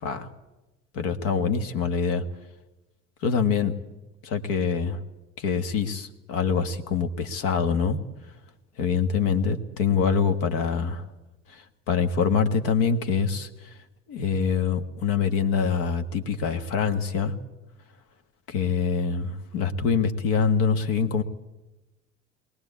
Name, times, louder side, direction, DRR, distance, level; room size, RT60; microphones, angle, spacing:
voice 1, 0.9-2.2 3.2-3.7 4.2-5.0 5.4-8.0 8.8-11.1 11.9-13.5 14.1-17.3 18.5-21.2, left 6 dB, 55° left, 8 dB, 1.6 m, -25 dB
23.0 x 17.5 x 8.4 m, 1.0 s
figure-of-eight pair, 60°, 38 cm